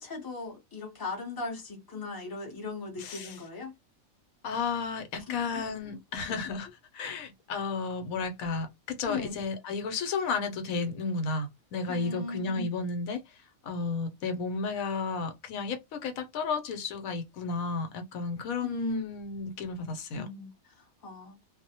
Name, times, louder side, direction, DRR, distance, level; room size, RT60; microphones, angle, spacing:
voice 1, 0.0-3.7 5.3-6.0 9.1-9.4 11.9-12.7 18.6-19.1 20.1-21.4, left 3 dB, 20° left, 0.6 m, -38 dB
voice 2, 3.0-3.3 4.4-6.7 6.9-13.2 13.6-20.3, left 4 dB, 75° left, 1.1 m, -33 dB
2.4 x 2.1 x 2.7 m
omnidirectional pair, 1.5 m